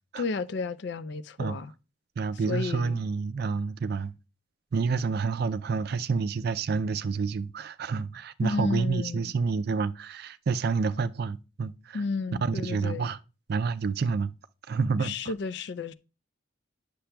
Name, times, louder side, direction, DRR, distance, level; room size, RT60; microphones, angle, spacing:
voice 1, 0.2-1.7 2.5-3.0 8.4-9.3 11.9-13.1 15.0-15.9, left 4 dB, 60° left, 0.4 m, -32 dB
voice 2, 2.2-4.1 4.7-12.0 12.4-13.2 13.5-14.3 14.7-15.1, right 5 dB, 50° right, 0.4 m, -28 dB
10.0 x 6.8 x 2.3 m
head